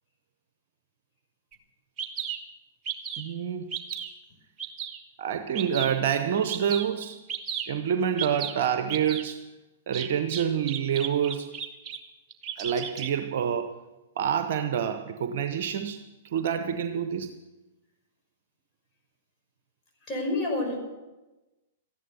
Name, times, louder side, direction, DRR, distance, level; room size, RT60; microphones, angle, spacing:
Bird vocalization bird call bird song, 1.5-1.6 2.0-2.4 2.9-3.3 3.7-4.1 4.6-5.0 5.5-6.0 6.5-6.9 7.3-7.7 8.2-8.5 8.9-9.2 9.9-12.0 12.3-13.1, right 9 dB, 25° right, 1.7 m, -34 dB
voice 1, 3.2-3.8 5.2-7.2 7.7-9.5 9.9-11.6 12.6-13.8 14.2-17.4, right 8 dB, 55° right, 0.7 m, -27 dB
voice 2, 20.1-20.8, left 2 dB, 25° left, 5.7 m, -28 dB
14.5 x 11.0 x 6.8 m
figure-of-eight pair, 110°, 0 cm